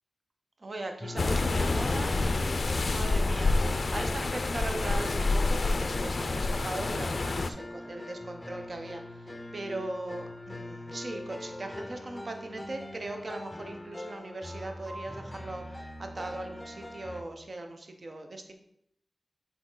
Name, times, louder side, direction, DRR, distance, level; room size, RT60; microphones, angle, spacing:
voice 1, 0.6-18.5, right 2 dB, 50° right, 5 dB, 0.7 m, -39 dB
sound 1, 1.0-17.2, left 1 dB, 15° left, 0.6 m, -42 dB
sound 2, 1.2-7.5, left 3 dB, 60° left, 0.4 m, -28 dB
6.2 x 4.0 x 3.8 m, 0.75 s
wide cardioid pair, 85°, 0 cm